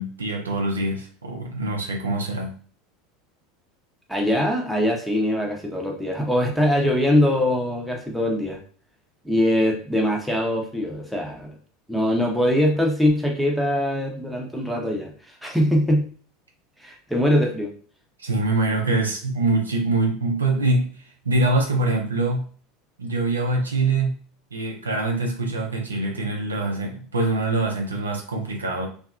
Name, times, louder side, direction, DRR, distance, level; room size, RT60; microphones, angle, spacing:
voice 1, 0.0-2.5 18.2-20.9 21.2-22.5 23.0-24.1 24.5-28.9, right 2 dB, 80° right, 1 dB, 0.5 m, -24 dB
voice 2, 4.1-8.6 9.2-11.5 11.9-15.1 15.4-16.1 16.8-17.7, left 1 dB, ahead, 0 dB, 0.7 m, -22 dB
2.7 x 2.4 x 2.3 m, 0.43 s
figure-of-eight pair, 75°, 0 cm